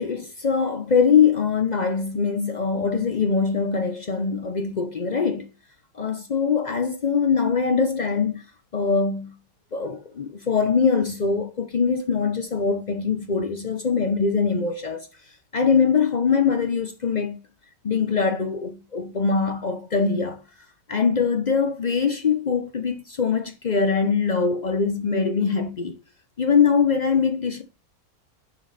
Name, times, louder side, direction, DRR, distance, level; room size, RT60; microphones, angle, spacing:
voice 1, 0.0-5.4 5.9-8.4 8.7-9.3 9.7-15.1 15.5-17.4 17.8-20.4 20.9-26.0 26.4-27.6, left 5 dB, 60° left, 0.4 m, -22 dB
6.9 x 5.2 x 4.1 m
omnidirectional pair, 1.8 m